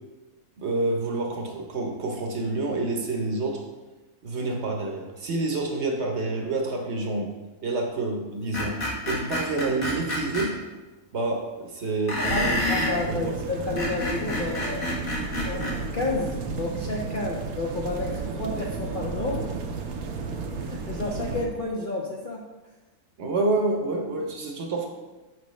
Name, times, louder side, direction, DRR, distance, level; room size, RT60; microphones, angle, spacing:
voice 1, 0.6-3.6 4.2-7.3 7.6-8.8 9.1-10.6 11.1-12.6 13.1-13.3 23.2-24.9, right 2 dB, 55° right, 2 dB, 1.0 m, -28 dB
Screech, 8.5-10.5 12.1-13.0 13.6-15.8, left 1 dB, 70° left, 2.0 m, -28 dB
voice 2, 12.2-14.9 15.5-19.5 20.6-22.5, left 3 dB, 50° left, -2 dB, 0.6 m, -31 dB
sound 1, 12.3-21.5, right 5 dB, 80° right, 1.2 m, -33 dB
6.1 x 5.8 x 3.1 m, 1.2 s
omnidirectional pair, 1.5 m